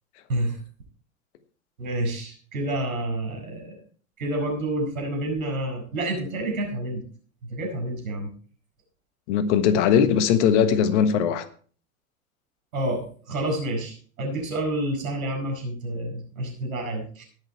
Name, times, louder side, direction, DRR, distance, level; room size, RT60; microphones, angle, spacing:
voice 1, 1.8-3.8 4.2-7.0 7.5-8.3 12.7-17.2, right 1 dB, 75° right, 7.2 m, -29 dB
voice 2, 9.3-11.5, left 8 dB, 55° left, 1.4 m, -20 dB
18.5 x 6.6 x 4.6 m
hypercardioid pair, 95°, 42 cm